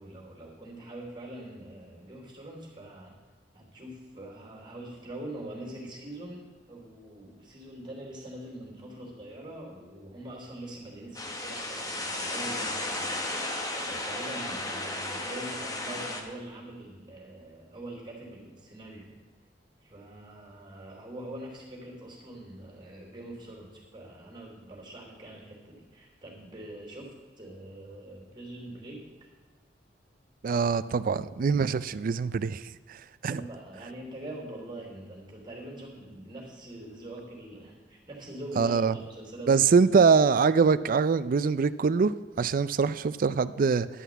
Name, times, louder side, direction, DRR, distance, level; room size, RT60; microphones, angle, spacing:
voice 1, 0.0-3.2 3.5-13.2 13.8-19.1 19.8-29.3 33.3-39.8, right 1 dB, 25° right, 3.1 m, -43 dB
sound 1, 11.1-16.2, left 2 dB, 20° left, 1.2 m, -34 dB
voice 2, 30.4-33.4 38.6-38.9 39.5-43.9, right 5 dB, 50° right, 0.4 m, -24 dB
11.0 x 5.7 x 8.2 m
head